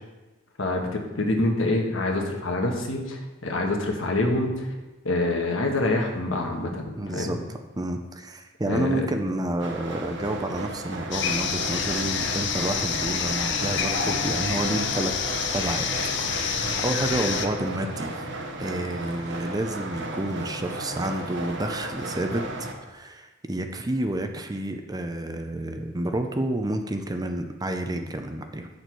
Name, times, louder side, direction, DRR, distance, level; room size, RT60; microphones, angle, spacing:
voice 1, 0.6-4.7 5.0-7.4 8.7-9.0, left 2 dB, 75° left, 1 dB, 1.4 m, -26 dB
voice 2, 7.0-7.4 7.8-15.1 15.5-15.9 16.2-18.2 18.6-22.4 22.9-28.7, right 1 dB, 20° right, 6 dB, 0.6 m, -29 dB
sound 1, 9.6-22.7, right 2 dB, 60° right, 1.1 m, -35 dB
sound 2, 11.1-17.5, left 6 dB, 60° left, 0.7 m, -28 dB
8.2 x 6.7 x 4.6 m, 1.1 s
head